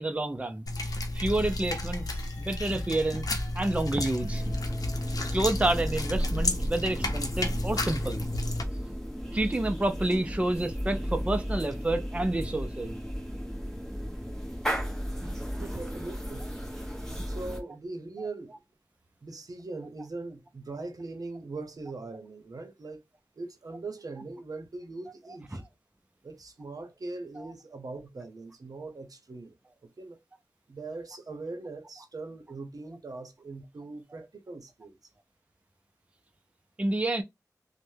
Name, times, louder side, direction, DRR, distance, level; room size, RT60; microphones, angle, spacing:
voice 1, 0.0-4.4 5.1-8.2 8.8-8.9 9.3-13.0 15.2-15.7 17.1-17.2 25.5-25.6 36.8-37.2, right 2 dB, 20° right, 0.4 m, -29 dB
sound 1, 0.7-8.6, left 1 dB, 70° left, 0.6 m, -32 dB
sound 2, 1.4-5.5 5.8-6.8, equal, 25° left, 1.8 m, -44 dB
sound 3, 4.3-17.6, equal, 5° left, 1.0 m, -35 dB
voice 2, 15.6-16.5 17.2-18.6 19.2-23.0 23.4-25.6 26.2-29.6 30.0-30.2 30.7-35.0, right 3 dB, 70° right, 0.7 m, -41 dB
3.1 x 2.1 x 3.2 m
wide cardioid pair, 70°, 6 cm